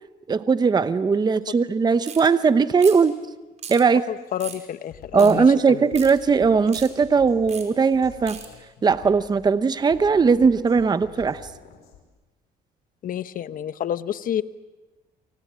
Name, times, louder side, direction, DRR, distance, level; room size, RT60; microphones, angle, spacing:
voice 1, 0.3-3.2 3.7-4.0 5.1-8.4 8.8-11.4, right 5 dB, 25° right, 12 dB, 0.9 m, -19 dB
sound 1, 2.0-2.3 2.8-3.1 3.6-3.8 4.4-4.6 5.2-5.3 5.9-6.1 6.7-6.9 7.5-7.6 8.3-8.5, right 6 dB, 45° right, 5.2 m, -37 dB
voice 2, 4.1-5.9 13.0-14.4, left 10 dB, 55° left, 13 dB, 1.0 m, -29 dB
Drum kit, 4.2-4.3 4.8-12.0, left 8 dB, 75° left, 5.4 m, -48 dB
28.5 x 24.5 x 7.5 m, 1.2 s
cardioid pair, 110°, 17 cm